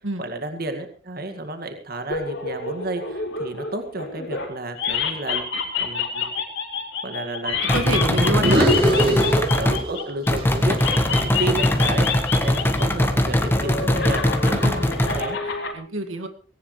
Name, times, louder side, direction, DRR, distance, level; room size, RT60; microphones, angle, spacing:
voice 1, 0.2-6.4 7.0-12.1 12.4-15.4, right 2 dB, 50° right, 6 dB, 2.1 m, -31 dB
sound 1, 2.1-4.5 4.8-10.3 10.8-12.9 13.1-15.7, left 5 dB, 60° left, 3.7 m, -28 dB
sound 2, 7.7-9.8 10.3-15.2, left 1 dB, 10° left, 1.4 m, -21 dB
voice 2, 7.7-9.6 14.5-14.9 15.4-16.3, right 2 dB, 85° right, 7 dB, 2.0 m, -28 dB
sound 3, 8.3-10.1 10.4-12.6, equal, 30° right, 4.0 m, -24 dB
19.0 x 17.5 x 3.2 m, 0.40 s
head